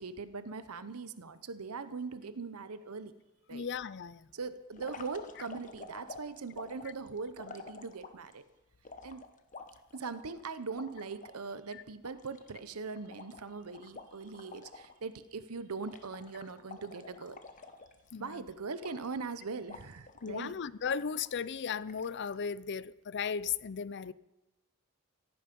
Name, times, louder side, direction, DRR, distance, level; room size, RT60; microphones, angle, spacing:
voice 1, 0.0-3.1 3.5-3.7 4.3-8.4 9.0-9.3 9.9-17.4 18.2-20.5, right 4 dB, 80° right, 0.8 m, -41 dB
voice 2, 3.5-4.3 11.7-11.8 18.1-18.4 20.2-24.1, left 6 dB, 50° left, 0.5 m, -36 dB
sound 1, 4.7-8.3 8.8-11.4 11.7-11.8 12.0-15.0 15.2-15.5 15.8-18.3 18.8-19.3 19.7-20.4 20.9-21.5 21.9-22.4, left 4 dB, 35° left, 1.1 m, -50 dB
16.0 x 15.0 x 5.3 m
head